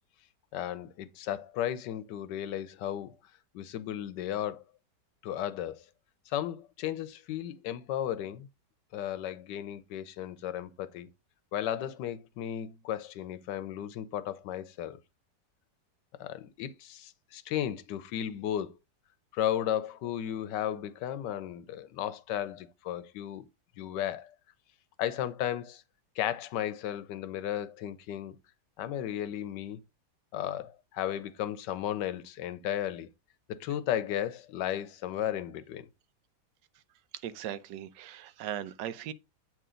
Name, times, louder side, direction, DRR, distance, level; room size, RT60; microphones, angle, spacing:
voice 1, 0.5-3.1 3.5-4.6 5.2-5.8 6.3-8.5 8.9-11.1 11.5-15.0 16.2-18.8 19.3-23.4 23.8-24.3 25.0-25.8 26.2-28.4 28.8-29.8 30.3-33.1 33.5-35.9, left 11 dB, 90° left, 1.3 m, -34 dB
voice 2, 37.2-39.1, right 11 dB, 90° right, 1.3 m, -38 dB
8.5 x 3.0 x 3.7 m
omnidirectional pair, 1.8 m